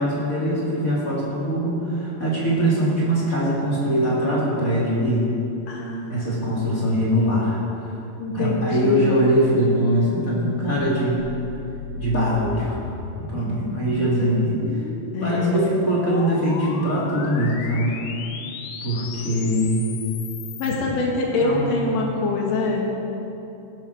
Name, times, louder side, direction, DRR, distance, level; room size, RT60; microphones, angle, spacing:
voice 1, 0.0-5.2 6.1-7.9 8.3-11.2 12.0-12.8 13.2-14.8 15.2-17.9 18.8-19.9 21.4-21.9, equal, 25° left, -6 dB, 2.5 m, -22 dB
voice 2, 5.7-6.2 8.2-9.2 15.1-15.5 20.6-23.0, left 3 dB, 55° left, -1 dB, 2.6 m, -24 dB
sound 1, 10.8-20.7, left 4 dB, 85° left, 2.7 m, -35 dB
16.0 x 11.0 x 4.6 m, 2.8 s
omnidirectional pair, 4.1 m